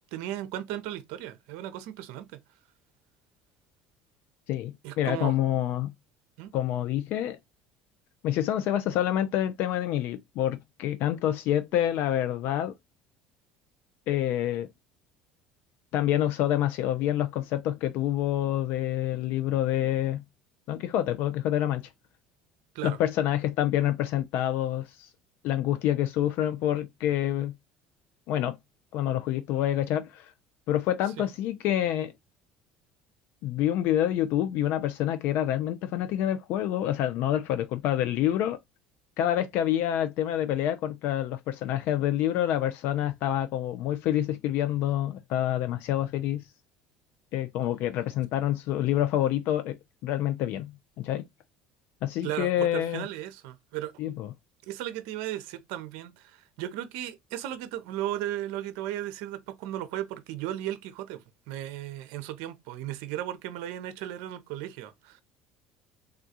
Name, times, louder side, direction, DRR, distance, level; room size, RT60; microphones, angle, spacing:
voice 1, 0.1-2.4 4.8-5.4 6.4-6.5 22.7-23.0 52.2-53.9 54.7-61.2 61.5-65.2, right 13 dB, 75° right, 0.5 m, -36 dB
voice 2, 4.5-5.9 6.5-7.4 8.2-12.7 14.1-14.7 15.9-20.2 20.7-21.9 22.8-25.1 25.4-27.5 28.3-28.6 28.9-30.3 30.7-32.1 33.4-38.6 39.2-46.4 47.3-49.8 50.0-51.2 52.0-53.1 54.0-54.3, left 12 dB, 65° left, 0.3 m, -27 dB
3.5 x 2.3 x 2.6 m
supercardioid pair, 80°, 4 cm